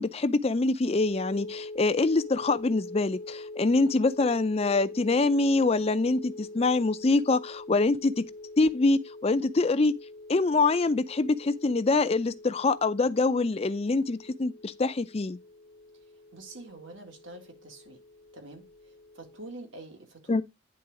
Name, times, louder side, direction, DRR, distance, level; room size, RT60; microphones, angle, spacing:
voice 1, 0.0-8.3 8.6-9.9 10.3-15.4 20.3-20.4, left 3 dB, 30° left, 0.4 m, -25 dB
sound 1, 1.0-19.5, left 2 dB, 65° left, 0.9 m, -44 dB
voice 2, 16.3-18.0 18.3-20.4, right 2 dB, 70° right, 1.9 m, -46 dB
9.6 x 3.9 x 4.7 m
head